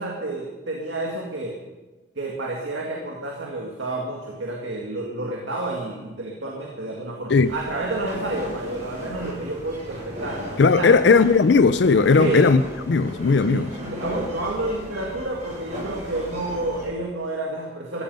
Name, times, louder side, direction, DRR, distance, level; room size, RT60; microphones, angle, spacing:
voice 1, 0.0-1.6 2.2-10.4 10.7-11.0 12.2-12.5 13.5-18.0, right 2 dB, 80° right, 2.1 m, -30 dB
sound 1, 7.4-16.9, left 1 dB, 40° right, 6.5 m, -37 dB
voice 2, 10.6-12.6 12.9-13.7, left 4 dB, 65° left, 0.4 m, -17 dB
14.5 x 14.5 x 5.5 m
head